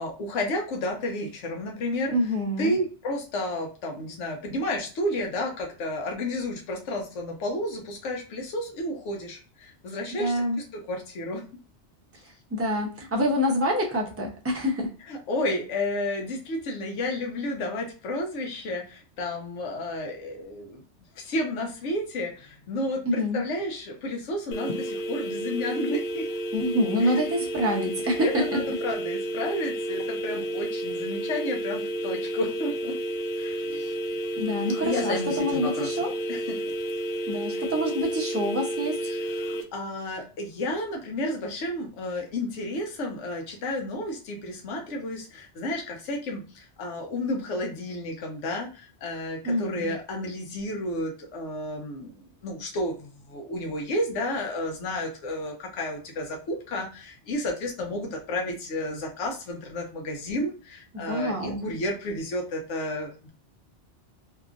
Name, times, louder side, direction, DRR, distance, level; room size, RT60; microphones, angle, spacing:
voice 1, 0.0-2.1 2.6-10.4 10.7-11.5 15.1-20.8 21.1-26.3 27.0-27.2 28.0-32.9 33.4-33.9 34.8-36.0 36.3-36.6 39.0-63.3, left 1 dB, 85° left, 2 dB, 1.0 m, -31 dB
voice 2, 2.1-2.7 10.2-10.6 12.5-14.9 23.1-23.4 26.5-28.4 33.6-33.8 34.4-36.1 37.3-39.0 49.4-49.9 60.9-61.6, equal, 20° right, 0 dB, 0.5 m, -26 dB
sound 1, 24.5-39.6, right 1 dB, 65° left, 0.7 m, -31 dB
2.8 x 2.4 x 2.3 m, 0.36 s
omnidirectional pair, 1.2 m